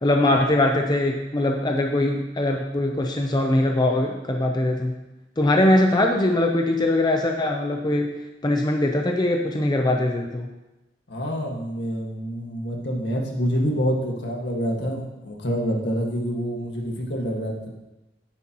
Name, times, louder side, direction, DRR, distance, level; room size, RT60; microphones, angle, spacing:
voice 1, 0.0-4.9 5.4-8.1 8.4-10.5, left 1 dB, 25° left, 3 dB, 0.6 m, -21 dB
voice 2, 11.1-17.7, equal, 70° left, 0 dB, 1.8 m, -27 dB
11.0 x 9.8 x 3.0 m, 1.0 s
head